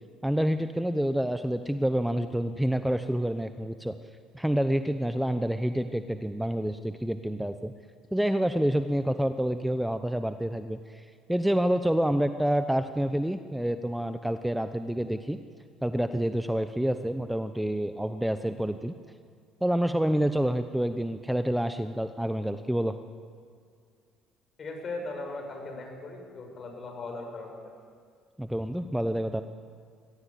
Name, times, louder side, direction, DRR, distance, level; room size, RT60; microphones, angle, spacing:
voice 1, 0.2-4.0 4.3-7.7 8.1-15.4 15.8-18.9 19.6-23.0 28.4-29.4, right 1 dB, 5° right, 9 dB, 0.9 m, -28 dB
voice 2, 24.6-27.6, left 2 dB, 45° left, 3 dB, 6.6 m, -38 dB
23.0 x 16.5 x 8.5 m, 2.1 s
supercardioid pair, 80°, 0 cm